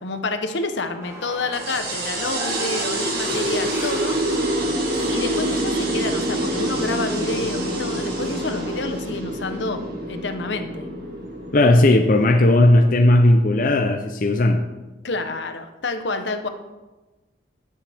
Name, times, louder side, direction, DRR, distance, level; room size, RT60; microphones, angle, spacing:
voice 1, 0.0-4.2 5.1-9.8 10.1-10.9 11.8-12.0 15.0-16.5, left 3 dB, 70° left, 8 dB, 0.9 m, -28 dB
sound 1, 1.0-8.8, right 1 dB, 15° right, 1.8 m, -37 dB
sound 2, 1.5-12.5, right 1 dB, 55° right, 2.6 m, -26 dB
voice 2, 11.5-14.6, left 1 dB, 45° left, 4 dB, 0.6 m, -16 dB
17.0 x 7.5 x 3.5 m, 1.2 s
head